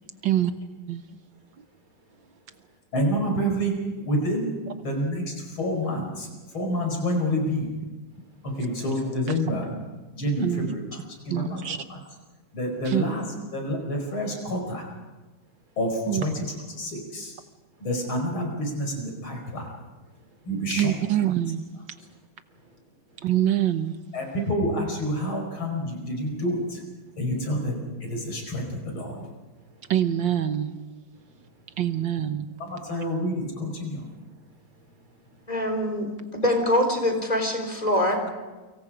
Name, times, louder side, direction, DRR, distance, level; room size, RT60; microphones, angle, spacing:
voice 1, 2.9-4.5 4.8-6.3 6.5-7.7 8.4-9.7 10.1-10.8 11.3-11.6 11.9-12.0 12.5-13.2 13.5-14.8 15.8-17.3 17.8-19.7 20.5-20.9 24.1-26.8 27.2-29.2 32.6-34.0, equal, 80° left, 2 dB, 5.7 m, -28 dB
voice 2, 10.4-10.7 11.3-11.8 12.8-13.0 16.1-16.2 20.7-21.7 23.2-24.0 29.9-30.8 31.8-32.5, right 11 dB, 65° right, 9 dB, 1.6 m, -25 dB
voice 3, 20.1-20.5 22.0-22.1 22.5-22.8 23.1-23.3 27.4-27.5 28.3-28.4 29.1-29.9 31.1-31.8 34.0-35.5, right 2 dB, 90° right, 2 dB, 5.7 m, -58 dB
voice 4, 35.5-38.2, left 1 dB, 20° left, 3 dB, 4.0 m, -24 dB
29.5 x 25.0 x 5.0 m, 1.3 s
omnidirectional pair, 2.3 m